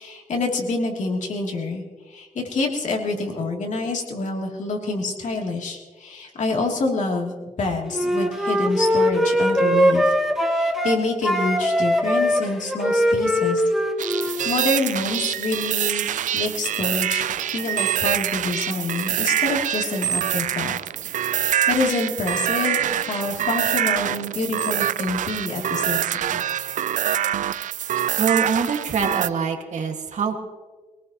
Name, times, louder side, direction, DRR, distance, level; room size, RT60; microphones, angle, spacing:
voice 1, 0.0-7.3 7.6-10.1 10.4-13.6 14.0-17.2 17.5-20.7 21.3-26.4, left 3 dB, 75° left, 0 dB, 3.0 m, -27 dB
Wind instrument woodwind instrument, 7.9-11.0 11.2-14.5, equal, 5° right, 2.0 m, -21 dB
sound 1, 14.0-29.3, right 11 dB, 90° right, 0.4 m, -25 dB
voice 2, 28.2-30.3, right 6 dB, 70° right, 4 dB, 2.0 m, -24 dB
23.5 x 18.5 x 3.1 m, 1.3 s
wide cardioid pair, 100°, 13 cm